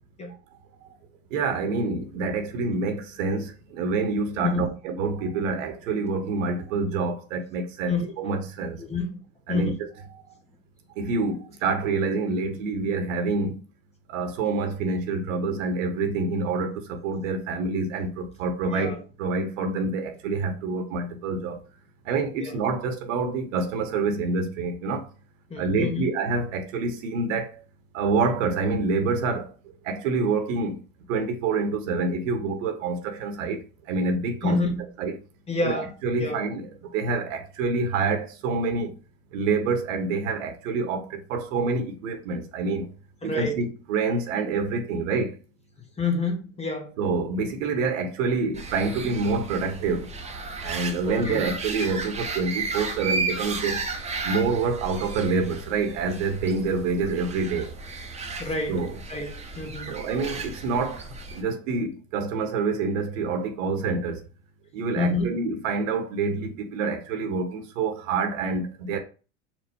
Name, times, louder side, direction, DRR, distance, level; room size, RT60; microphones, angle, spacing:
voice 1, 1.3-8.8 9.5-9.7 10.2-10.3 10.9-13.6 14.1-18.9 19.2-21.6 22.0-25.1 25.6-27.6 27.9-29.5 29.8-30.8 31.1-33.6 33.8-34.6 35.0-35.1 35.6-39.0 39.3-42.9 43.2-45.3 47.0-50.2 50.6-53.8 54.2-57.7 58.7-59.0 59.9-64.2 64.7-69.0, right 4 dB, 70° right, 1.0 m, -27 dB
voice 2, 7.9-8.3 8.8-9.2 9.5-9.7 18.7-19.0 22.4-22.6 25.5-26.1 34.4-34.9 35.5-35.9 36.2-36.5 43.2-43.6 46.0-46.9 51.0-51.4 58.4-58.8 59.1-60.0 64.9-65.4, left 3 dB, 15° left, 1.0 m, -28 dB
sound 1, 48.5-61.4, right 3 dB, 15° right, 0.8 m, -34 dB
4.4 x 2.4 x 4.2 m
hypercardioid pair, 95°, 40 cm